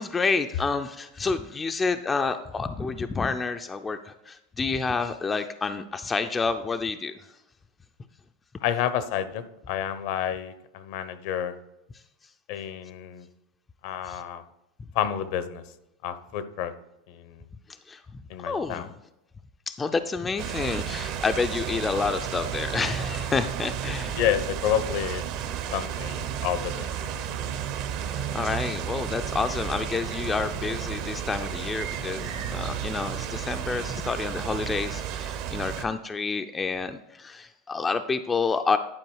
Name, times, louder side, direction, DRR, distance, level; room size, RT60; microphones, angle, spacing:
voice 1, 0.0-7.2 14.1-14.2 17.9-18.0 18.4-18.9 19.7-24.2 28.0-38.8, left 4 dB, 15° left, 8 dB, 0.4 m, -29 dB
voice 2, 8.6-11.5 12.5-13.3 13.8-14.4 14.9-15.6 16.0-16.7 17.1-17.4 18.3-18.9 24.2-25.2 25.7-26.9, left 10 dB, 60° left, 13 dB, 0.8 m, -29 dB
sound 1, 20.4-35.8, right 9 dB, 55° right, 0.9 m, -32 dB
10.5 x 4.7 x 4.7 m, 0.92 s
supercardioid pair, 130°, 0 cm